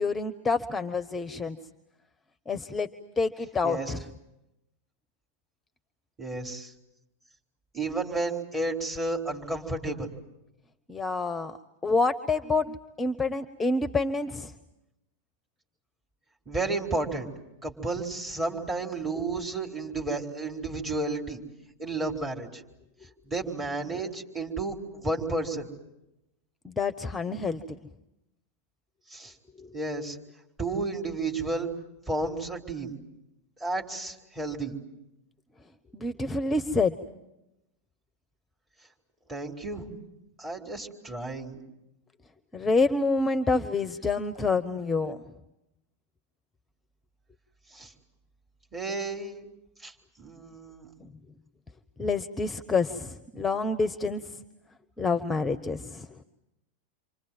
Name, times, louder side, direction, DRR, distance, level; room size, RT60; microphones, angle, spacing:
voice 1, 0.0-1.6 2.5-2.9 3.2-4.0 10.9-11.6 11.8-14.5 23.9-24.0 26.6-27.8 29.6-29.7 35.9-37.0 42.5-45.2 51.0-51.1 52.0-54.4 55.0-56.1, left 3 dB, 10° left, 11 dB, 0.9 m, -27 dB
voice 2, 3.6-3.9 6.2-6.7 7.7-10.1 16.5-17.3 17.6-21.4 21.8-22.6 23.2-25.7 29.1-29.3 29.7-30.2 30.6-31.7 32.1-32.9 33.6-34.7 39.3-39.9 40.4-41.6 47.7-47.9 48.7-49.4 49.8-50.9, right 2 dB, 15° right, 0 dB, 4.2 m, -32 dB
28.5 x 25.5 x 7.7 m, 0.93 s
figure-of-eight pair, 90°, 0 cm